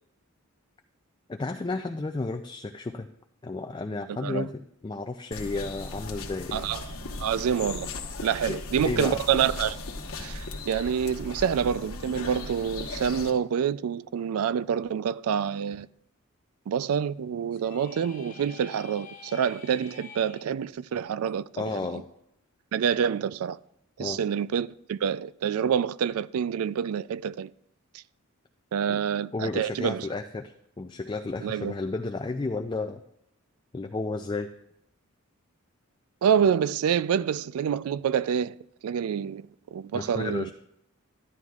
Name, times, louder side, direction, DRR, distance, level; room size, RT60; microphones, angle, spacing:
voice 1, 1.3-3.1 3.4-4.5 4.8-6.6 8.5-9.2 21.6-22.1 24.0-24.2 28.9-29.0 29.3-33.0 33.7-34.5 39.9-40.5, left 3 dB, 20° left, 0.3 m, -32 dB
sound 1, 5.3-13.3, left 3 dB, 75° left, 1.1 m, -37 dB
voice 2, 7.2-7.9 8.2-9.8 10.2-15.9 16.7-22.0 22.7-23.6 24.0-27.5 28.7-30.1 31.4-31.7 36.2-38.6 38.8-40.5, right 8 dB, 85° right, 0.3 m, -27 dB
sound 2, 17.5-20.4, left 5 dB, 40° left, 1.0 m, -47 dB
13.0 x 11.0 x 2.4 m
head